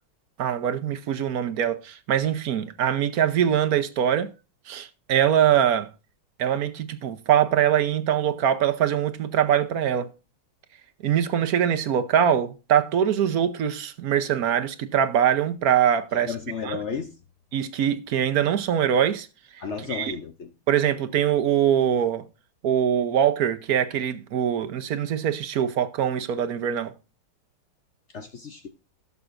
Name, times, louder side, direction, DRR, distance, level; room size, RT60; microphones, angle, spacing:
voice 1, 0.4-4.3 4.7-5.9 6.4-10.1 11.0-16.3 16.6-16.8 17.5-19.3 19.9-20.1 20.7-22.3 22.6-26.9, right 9 dB, 60° right, 1.0 m, -23 dB
voice 2, 16.1-17.1 19.6-20.5 28.1-28.7, left 6 dB, 85° left, 0.6 m, -33 dB
17.0 x 6.9 x 2.6 m
omnidirectional pair, 2.3 m